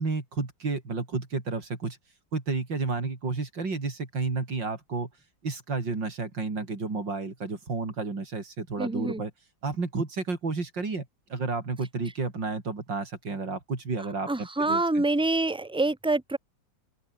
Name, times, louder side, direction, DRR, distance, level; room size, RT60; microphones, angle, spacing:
voice 1, 0.0-2.0 2.3-5.1 5.4-9.3 9.6-15.0, right 3 dB, 70° right, 4.7 m, -31 dB
voice 2, 8.8-9.2 14.3-16.4, right 2 dB, 5° right, 0.7 m, -26 dB
open air
omnidirectional pair, 2.0 m